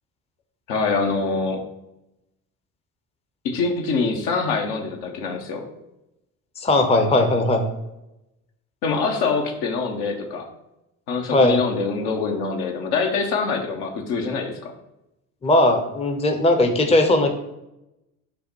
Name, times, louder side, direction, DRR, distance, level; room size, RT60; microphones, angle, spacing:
voice 1, 0.7-1.7 3.4-5.6 8.8-10.5 11.1-14.7, left 4 dB, 60° left, 3 dB, 1.1 m, -24 dB
voice 2, 6.6-7.7 11.3-11.6 15.4-17.3, left 1 dB, 15° left, 5 dB, 0.7 m, -18 dB
5.4 x 2.2 x 4.5 m, 0.90 s
hypercardioid pair, 60°, 45 cm